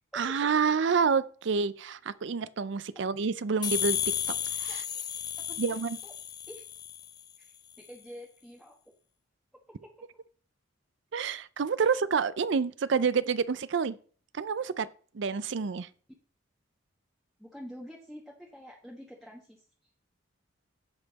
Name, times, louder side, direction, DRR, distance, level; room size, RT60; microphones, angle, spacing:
voice 1, 0.1-4.0 4.6-4.8 5.6-6.0 11.1-14.0 14.3-14.9 15.1-15.9, right 5 dB, 60° right, 0.4 m, -28 dB
sound 1, 3.6-7.2, left 9 dB, 20° left, 0.3 m, -33 dB
voice 2, 5.5-6.1 6.5-6.6 7.4-8.8 9.8-9.9 17.4-19.7, equal, ahead, 1.1 m, -47 dB
15.0 x 5.6 x 4.1 m
head